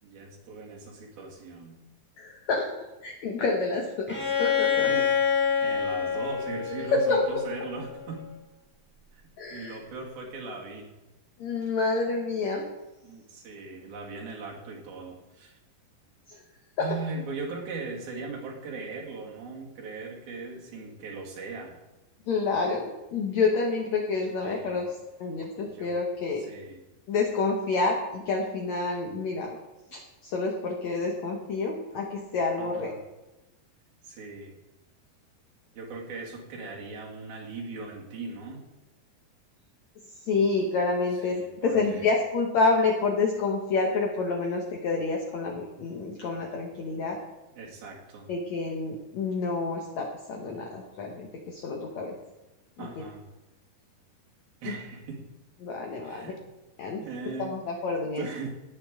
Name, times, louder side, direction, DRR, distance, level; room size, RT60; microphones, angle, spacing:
voice 1, 0.0-1.8 4.7-5.2 5.6-8.3 9.1-9.2 9.5-10.9 13.0-15.5 16.8-21.8 24.4-24.8 25.6-25.9 26.4-26.8 32.6-33.0 34.0-34.5 35.7-38.6 41.1-42.1 47.5-48.3 52.8-53.2 54.6-55.3 56.0-56.4 57.0-57.6 58.2-58.5, right 3 dB, 65° right, -1 dB, 3.8 m, -39 dB
voice 2, 2.2-2.7 3.0-4.9 6.9-7.2 9.4-9.8 11.4-12.6 16.3-16.4 16.8-16.9 22.3-24.9 25.2-26.4 27.1-29.6 29.9-32.9 40.2-47.2 48.3-52.1 52.8-52.9 54.7-54.8 55.6-56.3 56.8-57.0 57.4-58.3, left 3 dB, 65° left, 1 dB, 1.8 m, -28 dB
Bowed string instrument, 4.1-7.8, left 7 dB, 10° left, 0.5 m, -27 dB
18.0 x 8.8 x 3.7 m, 1.0 s
omnidirectional pair, 4.8 m